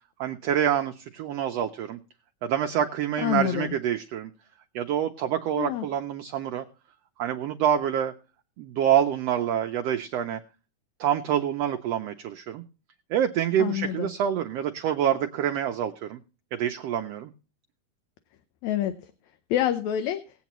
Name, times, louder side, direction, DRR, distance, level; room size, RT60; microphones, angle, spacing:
voice 1, 0.2-2.0 2.4-4.3 4.7-6.6 7.2-8.1 8.6-10.4 11.0-12.6 13.1-16.2 16.5-17.3, right 9 dB, 80° right, 6 dB, 1.4 m, -26 dB
voice 2, 3.2-3.7 5.6-5.9 13.6-14.1 18.6-18.9 19.5-20.2, left 11 dB, 75° left, 8 dB, 1.9 m, -27 dB
19.5 x 8.3 x 3.0 m, 0.34 s
omnidirectional pair, 3.5 m